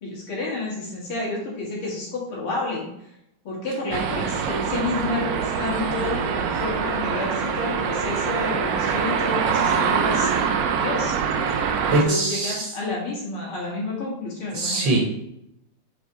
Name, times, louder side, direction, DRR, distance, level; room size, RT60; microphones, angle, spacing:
voice 1, 0.0-2.9 3.4-10.3 10.8-11.1 11.8-14.9, left 2 dB, 85° left, -5 dB, 2.8 m, -30 dB
sound 1, 3.9-12.0, right 6 dB, 85° right, 0.8 m, -24 dB
voice 2, 11.9-12.7 14.5-15.0, right 2 dB, 70° right, 0 dB, 1.6 m, -22 dB
5.3 x 4.4 x 4.0 m, 0.81 s
omnidirectional pair, 2.3 m